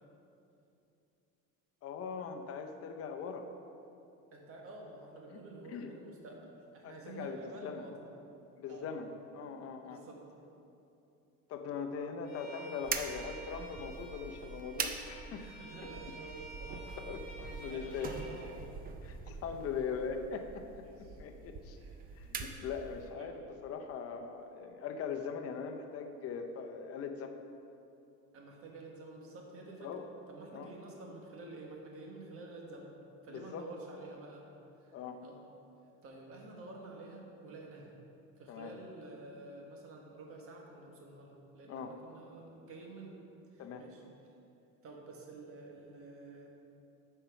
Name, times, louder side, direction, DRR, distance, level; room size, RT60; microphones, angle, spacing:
voice 1, 1.8-3.5 5.3-5.4 5.7-5.9 6.8-7.9 8.6-10.0 11.5-15.4 17.0-18.1 19.0-21.8 22.2-27.3 29.8-30.0 30.5-30.7 33.3-33.7 34.9-35.2 38.5-38.7 41.7-41.9 43.6-43.9, left 6 dB, 50° left, 5 dB, 0.7 m, -41 dB
voice 2, 4.3-8.0 8.7-8.9 9.8-10.2 15.3-16.9 17.4-18.7 19.3-19.6 19.9-20.0 20.8-21.2 21.8-22.2 23.2-23.3 28.3-29.9 30.3-32.9 33.2-34.4 34.8-35.4 36.0-37.9 38.4-43.1 43.5-44.0 44.8-46.5, right 2 dB, 45° right, 0 dB, 1.4 m, -50 dB
Bowed string instrument, 12.2-18.5, right 2 dB, 30° left, 1.7 m, -51 dB
sound 1, 12.8-23.2, right 5 dB, 30° right, 0.5 m, -43 dB
8.1 x 4.5 x 5.7 m, 2.7 s
cardioid pair, 140°, 31 cm